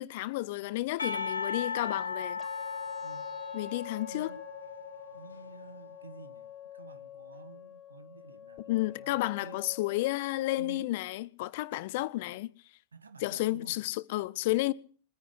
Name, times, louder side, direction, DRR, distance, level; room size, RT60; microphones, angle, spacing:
voice 1, 0.0-2.4 3.5-4.3 8.7-12.5 13.2-14.7, left 18 dB, 50° left, 0.9 m, -32 dB
Percussion, 1.0-5.8, left 5 dB, 75° left, 1.5 m, -37 dB
sound 1, 2.4-10.4, left 10 dB, 20° left, 1.2 m, -49 dB
voice 2, 5.1-8.7 9.0-9.6 10.6-11.0 12.9-13.7, right 4 dB, 75° right, 1.6 m, -50 dB
23.0 x 10.0 x 6.3 m
figure-of-eight pair, 90°, 0 cm